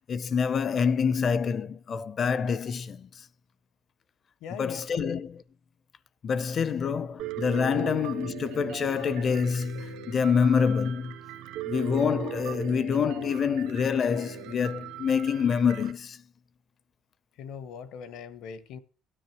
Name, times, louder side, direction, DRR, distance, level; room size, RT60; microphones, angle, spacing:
voice 1, 0.1-3.2 4.6-5.4 6.2-11.2 11.7-16.2, left 6 dB, 30° left, 0.5 m, -26 dB
voice 2, 4.4-5.2 7.7-7.8 17.4-18.8, left 7 dB, 65° left, 1.2 m, -40 dB
Piano, 7.2-15.9, right 12 dB, 85° right, 1.2 m, -39 dB
17.0 x 10.0 x 2.9 m
cardioid pair, 170°, 0 cm